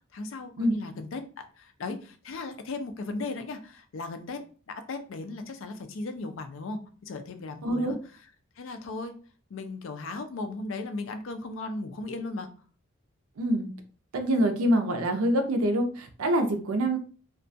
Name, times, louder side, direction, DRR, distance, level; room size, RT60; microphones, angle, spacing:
voice 1, 0.1-4.4 4.7-8.0 8.6-9.1 9.5-12.5, left 3 dB, 65° left, 7 dB, 0.4 m, -36 dB
voice 2, 7.6-7.9 13.4-13.7 14.1-17.0, right 1 dB, 85° right, 6 dB, 0.5 m, -25 dB
2.3 x 2.2 x 2.6 m, 0.39 s
head